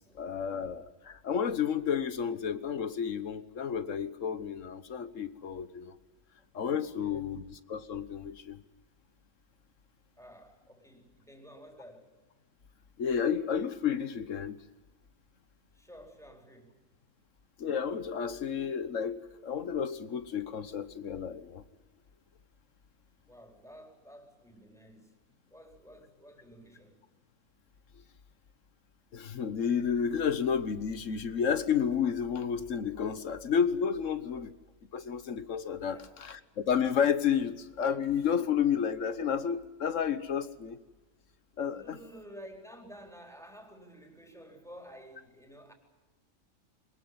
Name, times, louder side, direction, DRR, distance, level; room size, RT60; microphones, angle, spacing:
voice 1, 0.1-5.9 6.5-8.6 13.0-14.6 17.6-21.6 29.1-34.5 34.9-40.8 41.6-42.0, left 7 dB, 70° left, 13 dB, 1.5 m, -31 dB
voice 2, 10.2-12.1 15.7-16.8 23.3-25.2 25.5-27.0 35.9-36.2 41.7-45.7, equal, ahead, 3 dB, 4.1 m, -52 dB
22.5 x 20.0 x 9.6 m, 1.1 s
omnidirectional pair, 1.3 m